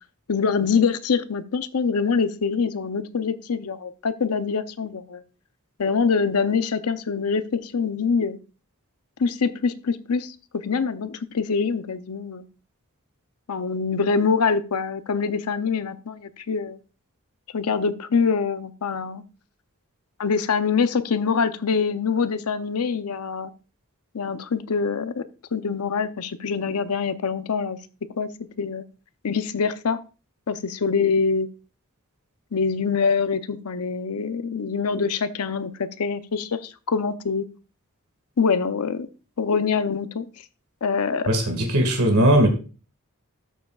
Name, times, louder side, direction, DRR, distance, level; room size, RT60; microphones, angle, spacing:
voice 1, 0.3-5.2 5.8-8.4 9.2-12.5 13.5-16.8 17.5-19.2 20.2-23.5 24.1-25.2 25.5-27.8 28.2-28.3 28.6-28.8 29.2-30.0 30.5-31.5 32.5-37.5 38.4-39.1 39.4-40.3 40.8-41.3, left 5 dB, 85° left, 12 dB, 0.6 m, -24 dB
voice 2, 41.3-42.5, right 1 dB, 85° right, 4 dB, 1.9 m, -18 dB
13.0 x 7.0 x 2.4 m, 0.34 s
head